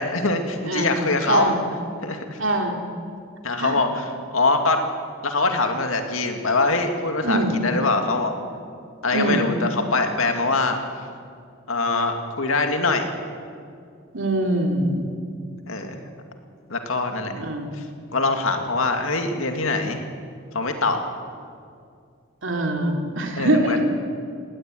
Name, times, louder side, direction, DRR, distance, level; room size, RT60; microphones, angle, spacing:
voice 1, 0.0-1.5 2.0-2.4 3.4-4.8 5.2-8.3 9.0-10.8 11.7-13.1 15.7-16.0 16.7-17.3 18.1-20.0 20.5-21.0 23.4-23.8, left 3 dB, 85° left, 5 dB, 2.3 m, -23 dB
voice 2, 1.3-1.6 2.4-2.8 3.6-3.7 7.2-7.6 9.1-9.5 14.1-15.1 17.1-17.7 22.4-23.9, right 1 dB, 70° right, 3 dB, 2.8 m, -23 dB
19.0 x 16.5 x 9.3 m, 2.3 s
head